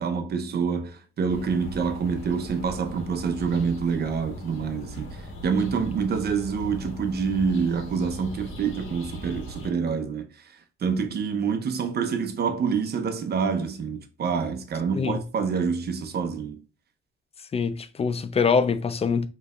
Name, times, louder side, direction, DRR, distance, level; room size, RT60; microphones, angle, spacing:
voice 1, 0.0-5.2 5.4-10.3 10.8-16.6, right 5 dB, 55° right, 0.9 m, -27 dB
sound 1, 1.3-9.7, equal, 85° left, 1.3 m, -39 dB
voice 2, 17.5-19.3, left 5 dB, 30° left, 0.5 m, -24 dB
5.3 x 3.2 x 2.4 m
cardioid pair, 90°, 20 cm